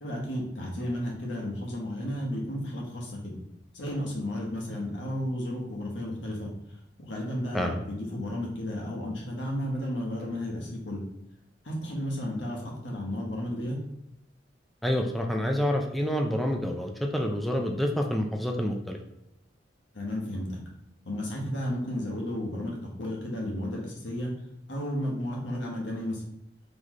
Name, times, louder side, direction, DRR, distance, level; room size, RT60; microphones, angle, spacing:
voice 1, 0.0-3.4 3.7-6.5 7.0-11.0 11.6-13.8 19.9-20.6 21.0-24.3 24.7-26.2, left 1 dB, 85° left, -2 dB, 1.2 m, -33 dB
voice 2, 14.8-19.0, equal, ahead, 2 dB, 0.3 m, -28 dB
4.0 x 3.2 x 3.1 m, 0.86 s
head